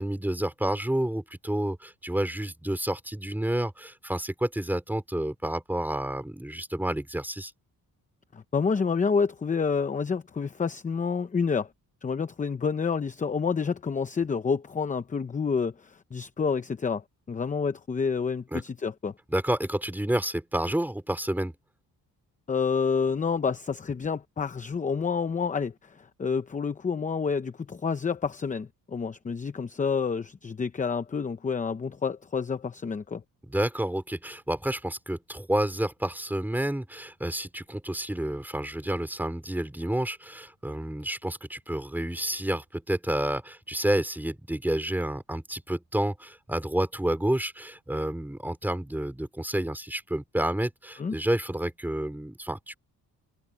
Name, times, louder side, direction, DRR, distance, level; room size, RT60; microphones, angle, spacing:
voice 1, 0.0-7.5 18.5-18.6 19.3-21.5 33.5-52.7, right 1 dB, 5° right, 4.3 m, -29 dB
voice 2, 8.3-11.7 12.0-17.0 17.3-19.1 22.5-33.2 51.0-51.2, left 5 dB, 20° left, 0.7 m, -28 dB
cardioid pair, 145°, 36 cm